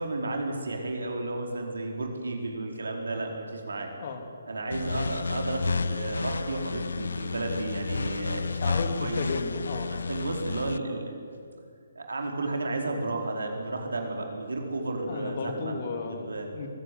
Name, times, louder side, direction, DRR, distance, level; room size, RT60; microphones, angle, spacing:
voice 1, 0.0-3.9 4.5-8.7 9.0-9.2 9.9-11.2 11.9-16.5, right 2 dB, 75° right, 2 dB, 4.6 m, -33 dB
Arp loop, 4.7-10.8, left 4 dB, 70° left, 0.6 m, -31 dB
voice 2, 8.5-10.1 15.1-16.3 16.5-16.7, left 4 dB, 45° left, 4 dB, 3.3 m, -34 dB
23.0 x 15.0 x 9.7 m, 2.3 s
figure-of-eight pair, 140°, 0 cm